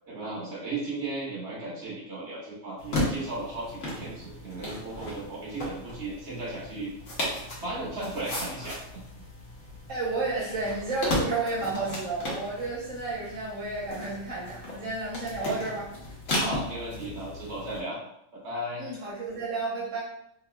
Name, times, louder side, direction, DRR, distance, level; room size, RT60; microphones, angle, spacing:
voice 1, 0.0-6.9 7.6-8.8 16.3-18.0 18.3-18.8, right 2 dB, 65° right, -5 dB, 1.5 m, -35 dB
sound 1, 2.8-17.8, left 1 dB, 75° left, 1.3 m, -35 dB
voice 2, 9.9-15.9 18.8-20.0, right 3 dB, 90° right, -6 dB, 1.3 m, -31 dB
3.7 x 3.1 x 2.2 m, 0.75 s
omnidirectional pair, 1.3 m